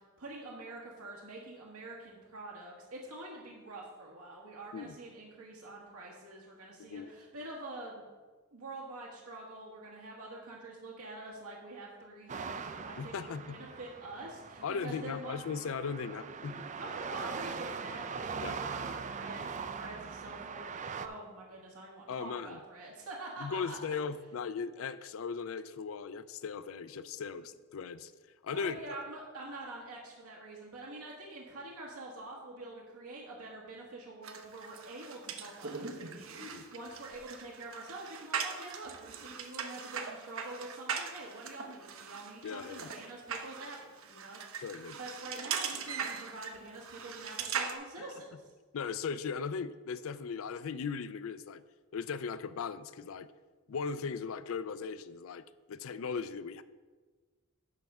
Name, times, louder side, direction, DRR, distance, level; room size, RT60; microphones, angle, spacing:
voice 1, 0.0-8.0 8.5-15.4 16.8-23.9 28.5-48.5, right 2 dB, 85° right, -3 dB, 1.4 m, -46 dB
voice 2, 6.8-7.1 13.0-13.6 14.6-16.7 18.4-18.6 22.1-22.6 23.4-28.1 28.4-28.8 36.4-36.6 42.4-42.9 44.6-45.0 48.0-48.1 48.7-51.6 51.9-53.3 53.7-56.6, left 5 dB, 65° left, 14 dB, 0.4 m, -38 dB
sound 1, 12.3-21.1, right 5 dB, 35° right, 0.4 m, -41 dB
sound 2, 34.2-47.7, right 6 dB, 65° right, 0.8 m, -40 dB
10.5 x 3.5 x 6.5 m, 1.3 s
head